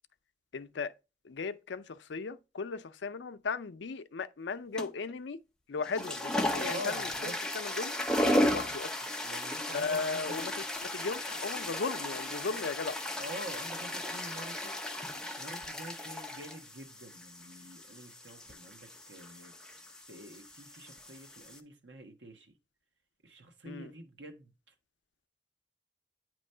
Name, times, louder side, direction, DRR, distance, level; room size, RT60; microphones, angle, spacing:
voice 1, 0.5-0.9 1.2-5.4 5.7-7.9 8.2-8.9 9.7-10.5 10.8-13.0 23.6-23.9, left 4 dB, 80° left, 0.5 m, -36 dB
sound 1, 4.8-5.1 5.8-21.6, left 1 dB, 5° left, 0.5 m, -35 dB
voice 2, 6.5-7.3 9.2-10.6 13.2-14.9 15.4-19.5 20.1-22.6 23.2-24.7, equal, 85° right, 1.2 m, -46 dB
9.1 x 3.0 x 5.4 m
head